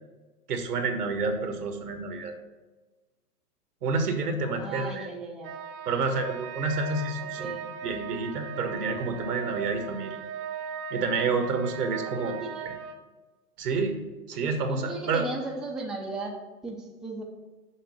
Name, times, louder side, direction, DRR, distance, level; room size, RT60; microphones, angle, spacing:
voice 1, 0.5-2.3 3.8-5.1 5.9-7.5 7.8-10.2 10.9-12.4 13.6-14.0 14.3-15.3, right 4 dB, 80° right, 5 dB, 1.6 m, -29 dB
voice 2, 4.6-5.6 7.2-7.8 12.0-12.6 14.7-17.2, right 3 dB, ahead, -2 dB, 0.7 m, -37 dB
sound 1, 5.4-12.9, right 7 dB, 50° right, 1.1 m, -38 dB
6.5 x 5.9 x 6.2 m, 1.2 s
hypercardioid pair, 130°, 46 cm